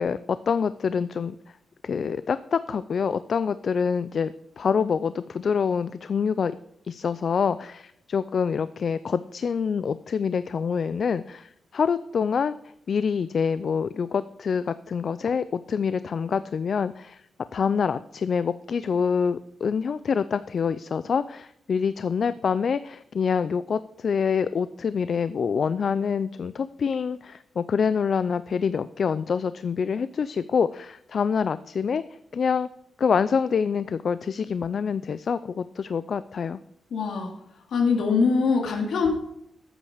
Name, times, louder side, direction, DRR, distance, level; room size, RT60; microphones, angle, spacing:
voice 1, 0.0-1.4 1.8-6.5 6.8-12.6 12.9-17.2 17.5-32.0 32.3-32.7 33.0-36.6, left 6 dB, 55° left, 14 dB, 0.4 m, -26 dB
voice 2, 36.9-37.3 37.7-39.1, left 5 dB, 75° left, 1 dB, 2.5 m, -23 dB
13.5 x 8.7 x 5.0 m, 0.76 s
wide cardioid pair, 120°, 0 cm